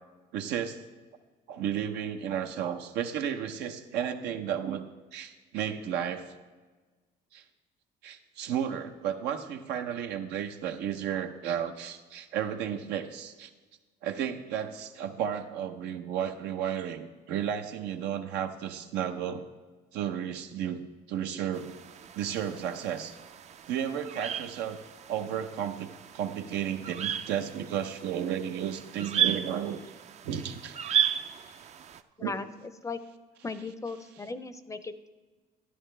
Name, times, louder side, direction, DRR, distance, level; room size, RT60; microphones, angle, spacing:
voice 1, 0.3-0.8 1.5-4.8 5.1-6.3 7.3-7.4 8.0-13.5 14.0-19.4 19.9-20.8 21.1-21.8 22.2-23.1 23.7-24.8 25.1-29.8 30.2-31.0 32.2-32.3, right 9 dB, 90° right, 6 dB, 0.8 m, -33 dB
sound 1, 21.5-32.0, right 10 dB, 40° right, 0.4 m, -34 dB
voice 2, 32.2-33.0 33.4-35.1, left 4 dB, 20° left, 12 dB, 0.5 m, -37 dB
12.5 x 10.0 x 3.3 m, 1.3 s
cardioid pair, 110°, 17 cm